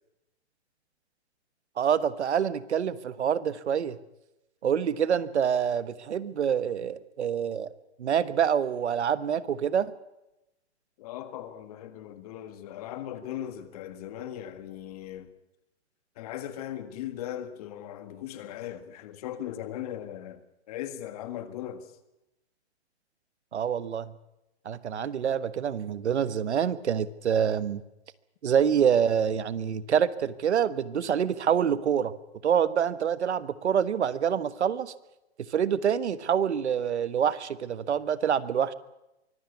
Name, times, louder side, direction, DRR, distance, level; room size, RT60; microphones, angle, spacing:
voice 1, 1.8-4.0 4.6-7.7 8.0-9.9 23.5-24.1 24.6-27.8 28.4-32.1 32.4-34.9 35.5-38.7, right 8 dB, 75° right, 1.4 m, -26 dB
voice 2, 11.0-15.3 16.2-20.4 20.7-21.9, left 11 dB, 35° left, 1.8 m, -38 dB
24.0 x 15.5 x 8.3 m
hypercardioid pair, 160°, 34 cm